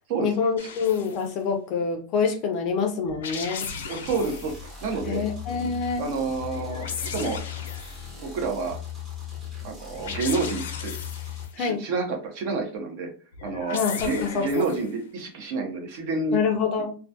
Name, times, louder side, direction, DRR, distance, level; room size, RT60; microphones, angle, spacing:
voice 1, 0.2-3.7 5.0-6.0 11.6-11.8 13.7-14.5 16.3-17.0, left 5 dB, 35° left, 5 dB, 0.4 m, -26 dB
sound 1, 0.6-1.2 3.0-4.6 6.5-8.2 9.9-11.5 13.3-14.9, left 6 dB, 85° left, 0.5 m, -36 dB
voice 2, 3.9-5.2 6.0-7.4 8.2-8.8 9.6-11.0 11.6-13.1 13.4-16.4, right 3 dB, 45° right, 3 dB, 0.6 m, -29 dB
sound 2, 4.1-11.5, left 8 dB, 10° right, 0.7 m, -38 dB
2.2 x 2.2 x 2.6 m, 0.38 s
supercardioid pair, 160°, 0 cm